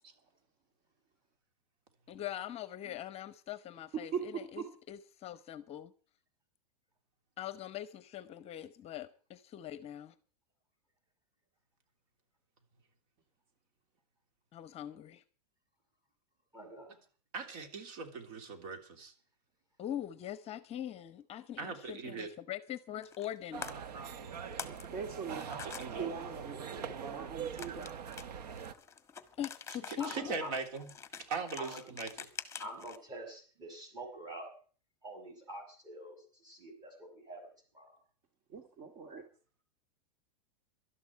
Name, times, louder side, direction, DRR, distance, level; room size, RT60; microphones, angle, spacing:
voice 1, 2.1-5.9 7.4-10.1 14.5-15.2 19.8-23.7 29.4-30.3, left 11 dB, 30° left, 0.8 m, -42 dB
voice 2, 4.1-4.7 24.6-25.4 26.0-28.0 38.5-39.2, right 6 dB, 45° right, 2.3 m, -41 dB
voice 3, 16.5-17.0 30.0-30.6 31.6-31.8 32.6-34.5 35.0-37.9, right 1 dB, 20° right, 6.4 m, -46 dB
voice 4, 17.3-19.1 21.6-22.3 25.3-26.1 29.9-30.9 31.3-32.1, right 4 dB, 60° right, 3.2 m, -40 dB
sound 1, 23.0-23.4 23.6-23.7 24.3-24.9 25.1-25.9 27.6-33.0, left 7 dB, 15° left, 1.5 m, -45 dB
sound 2, 23.5-28.7, right 7 dB, 75° right, 1.3 m, -43 dB
18.5 x 12.5 x 4.7 m
hypercardioid pair, 115°, 20 cm